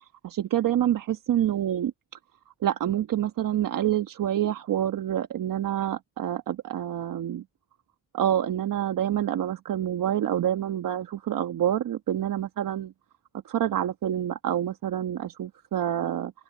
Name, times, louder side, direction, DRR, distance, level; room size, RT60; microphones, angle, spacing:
voice 1, 0.2-1.9 2.6-7.4 8.1-12.9 13.4-16.3, right 11 dB, 75° right, 1.3 m, -27 dB
supercardioid pair, 55°, 33 cm